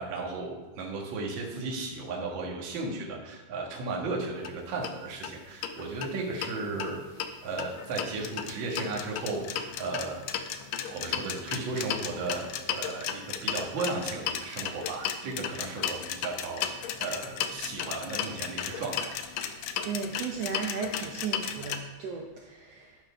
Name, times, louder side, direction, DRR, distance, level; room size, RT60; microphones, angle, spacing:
voice 1, 0.0-10.2 10.9-19.1, right 3 dB, 45° right, -2 dB, 1.7 m, -35 dB
sound 1, 4.4-4.5 4.8-4.9 5.2-5.3 5.6-6.5 6.8-21.8, left 8 dB, 85° left, 1.5 m, -34 dB
voice 2, 19.8-23.0, right 5 dB, 90° right, 1 dB, 1.4 m, -35 dB
11.5 x 4.4 x 5.5 m, 1.2 s
omnidirectional pair, 3.9 m